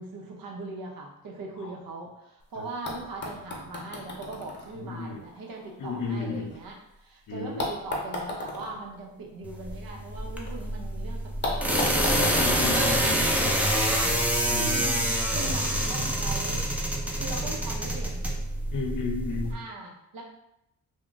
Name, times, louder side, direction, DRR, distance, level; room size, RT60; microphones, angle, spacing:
voice 1, 0.0-12.9 13.7-14.3 14.7-16.6 17.1-18.3 19.5-20.2, right 3 dB, 70° right, 0 dB, 0.8 m, -40 dB
sound 1, 2.4-2.5 2.9-6.9 7.6-10.5 10.8-10.9 11.4-13.8 14.8-14.9, left 2 dB, 30° left, 0.9 m, -37 dB
voice 2, 4.8-5.2 5.8-6.5 7.3-7.6 12.4-14.0 14.5-14.9 18.7-19.6, left 4 dB, 60° left, 3 dB, 0.7 m, -33 dB
sound 2, 9.4-19.5, equal, 5° right, 0.5 m, -27 dB
sound 3, 12.8-14.5, right 2 dB, 35° right, 0.8 m, -40 dB
2.3 x 2.2 x 3.8 m, 0.83 s
cardioid pair, 70°, 35 cm